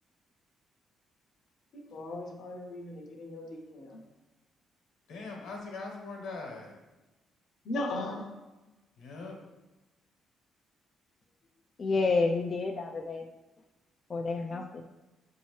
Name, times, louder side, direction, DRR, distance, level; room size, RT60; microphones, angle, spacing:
voice 1, 1.7-4.0 7.6-8.3, left 1 dB, 60° left, 2 dB, 0.7 m, -38 dB
voice 2, 5.1-6.7 9.0-9.4, left 3 dB, 80° left, 0 dB, 1.0 m, -41 dB
voice 3, 11.8-13.3 14.1-14.9, left 3 dB, 40° left, 2 dB, 0.3 m, -29 dB
6.2 x 2.7 x 3.1 m, 1.1 s
cardioid pair, 90°, 0 cm